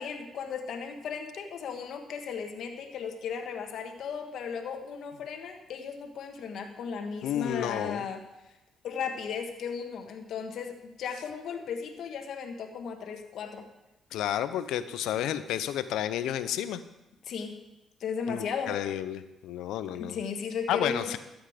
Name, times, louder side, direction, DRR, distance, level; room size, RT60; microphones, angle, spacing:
voice 1, 0.0-8.2 8.8-13.6 17.2-17.6 18.0-18.7 20.0-21.2, left 6 dB, 70° left, 4 dB, 1.4 m, -36 dB
voice 2, 7.2-8.1 14.1-16.8 18.3-20.2 20.7-21.2, left 11 dB, 90° left, 12 dB, 0.6 m, -31 dB
13.0 x 8.1 x 5.0 m, 0.96 s
cardioid pair, 90°, 0 cm